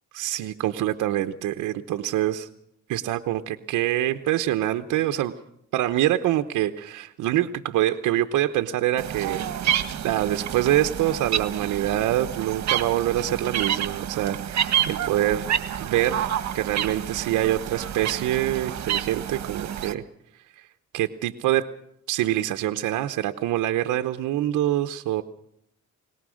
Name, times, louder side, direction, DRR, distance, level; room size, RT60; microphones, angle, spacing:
voice 1, 0.1-2.5 2.9-5.3 5.7-9.4 10.0-15.5 15.8-16.3 16.5-20.0 20.6-20.7 20.9-21.7 22.1-25.2, right 13 dB, 85° right, 8 dB, 0.9 m, -25 dB
sound 1, 9.0-19.9, right 10 dB, 65° right, 1.6 m, -29 dB
21.5 x 19.5 x 6.3 m, 0.76 s
cardioid pair, 90°, 30 cm